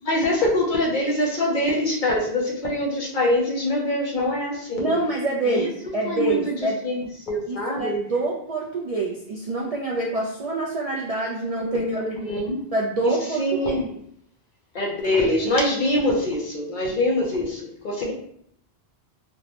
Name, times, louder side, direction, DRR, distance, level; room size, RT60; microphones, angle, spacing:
voice 1, 0.0-4.9 5.4-5.7 6.0-6.5 6.8-8.0 11.6-12.6 13.4-13.9 14.7-18.1, left 1 dB, 55° left, -2 dB, 0.7 m, -24 dB
voice 2, 4.8-6.8 7.5-12.0 12.7-13.8, right 2 dB, 55° right, -3 dB, 0.4 m, -26 dB
3.3 x 2.0 x 2.8 m, 0.68 s
omnidirectional pair, 1.1 m